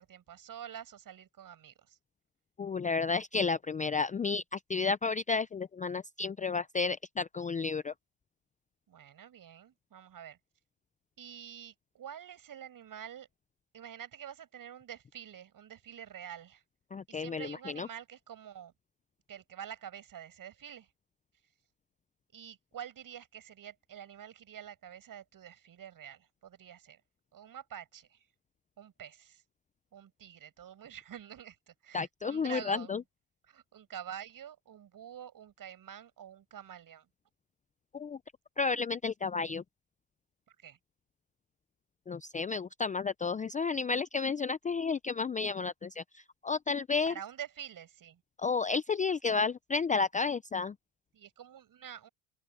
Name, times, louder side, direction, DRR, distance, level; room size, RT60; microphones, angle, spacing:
voice 1, 0.0-2.0 8.9-10.4 11.2-13.3 13.7-16.6 17.1-18.7 19.3-20.9 22.3-27.0 27.3-28.3 28.8-29.4 29.9-33.0 33.5-37.1 40.5-40.8 47.1-48.2 51.1-52.1, right 9 dB, 40° right, 6.2 m, -47 dB
voice 2, 2.6-7.9 16.9-17.9 31.9-33.0 37.9-38.2 38.6-39.6 42.1-47.1 48.4-50.7, left 4 dB, 15° left, 0.6 m, -32 dB
open air
supercardioid pair, 85°, 48 cm